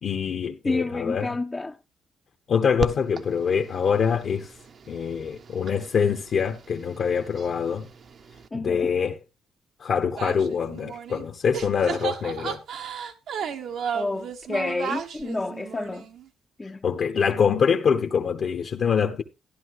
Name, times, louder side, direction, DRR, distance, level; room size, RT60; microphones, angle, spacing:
voice 1, 0.0-1.3 2.5-4.5 4.9-7.9 8.5-9.2 9.8-12.6 16.8-19.2, left 6 dB, 55° left, 1.1 m, -24 dB
voice 2, 0.6-1.8 8.5-8.9 13.9-16.1 16.6-16.8, left 2 dB, 20° left, 0.6 m, -29 dB
sound 1, 2.8-8.5, right 6 dB, 50° right, 0.9 m, -39 dB
sound 2, 10.2-11.3 11.5-16.2, right 7 dB, 70° right, 1.3 m, -33 dB
13.0 x 11.0 x 3.0 m
cardioid pair, 90°, 0 cm